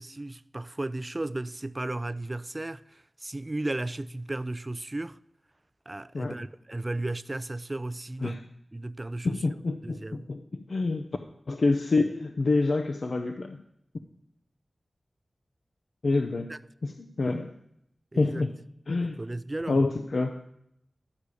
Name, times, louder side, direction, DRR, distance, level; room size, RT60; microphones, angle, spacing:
voice 1, 0.0-5.2 5.9-8.4 8.7-9.4 9.8-10.3 16.5-16.6 18.1-18.5 19.0-19.8, right 2 dB, 30° right, 0.4 m, -35 dB
voice 2, 9.2-11.1 11.5-13.6 16.0-16.5 16.8-17.5 18.2-18.5 18.9-19.2 19.7-20.4, left 3 dB, 70° left, 0.6 m, -27 dB
12.0 x 4.9 x 8.2 m
wide cardioid pair, 60°, 0 cm